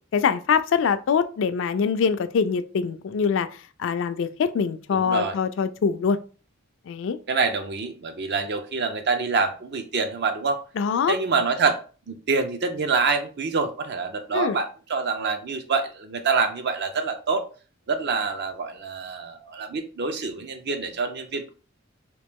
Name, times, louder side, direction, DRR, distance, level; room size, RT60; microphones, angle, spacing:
voice 1, 0.1-3.5 3.8-6.2 6.9-7.2 10.8-11.2 14.3-14.6, left 6 dB, 65° left, 0.3 m, -23 dB
voice 2, 4.9-5.4 7.3-10.6 11.1-11.8 12.1-17.5 17.9-21.5, right 4 dB, 55° right, 0.6 m, -26 dB
3.0 x 2.9 x 3.5 m
head